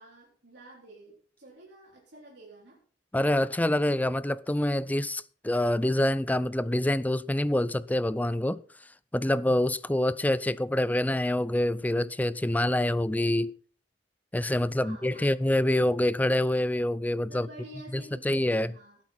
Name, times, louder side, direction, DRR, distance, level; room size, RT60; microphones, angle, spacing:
voice 1, 0.0-2.8 14.5-15.5 17.2-19.0, right 1 dB, 70° right, 4.2 m, -50 dB
voice 2, 3.1-8.6 9.1-13.5 14.3-17.5 17.9-18.7, left 1 dB, 10° left, 0.5 m, -26 dB
18.0 x 8.6 x 4.2 m
head